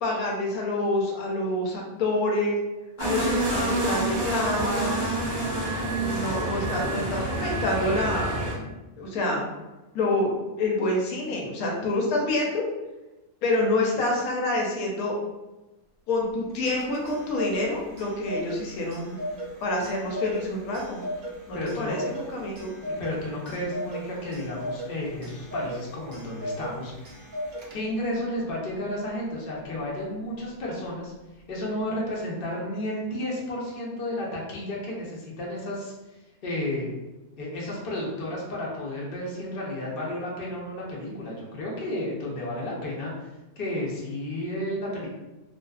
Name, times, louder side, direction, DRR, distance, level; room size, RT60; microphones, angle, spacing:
voice 1, 0.0-2.6 3.0-5.2 5.9-8.4 9.0-9.4 9.9-12.6 13.4-15.1 16.1-19.2 19.6-21.1 21.5-22.7, left 2 dB, 80° left, -1 dB, 1.1 m, -27 dB
sound 1, 3.0-8.5, right 1 dB, 40° right, 0.8 m, -27 dB
Clock, 16.5-28.1, equal, 70° right, 0.5 m, -37 dB
voice 2, 21.5-21.9 22.8-27.2 27.7-31.1 31.5-35.9 36.4-36.9 37.4-43.1 43.6-45.1, left 1 dB, 55° left, -4 dB, 0.6 m, -32 dB
2.5 x 2.2 x 2.3 m, 1.1 s
omnidirectional pair, 1.5 m